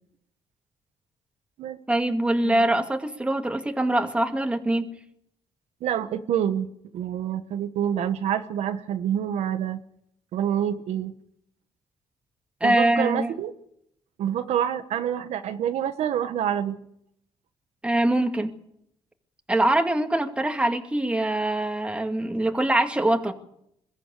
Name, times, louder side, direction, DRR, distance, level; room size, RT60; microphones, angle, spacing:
voice 1, 1.9-4.9 12.6-13.3 17.8-18.5 19.5-23.3, right 1 dB, 10° right, 4 dB, 2.3 m, -23 dB
voice 2, 5.8-9.8 10.3-11.1 12.6-13.5 14.2-16.8, right 9 dB, 85° right, 9 dB, 1.2 m, -27 dB
22.5 x 14.5 x 8.4 m, 0.74 s
cardioid pair, 110°, 11 cm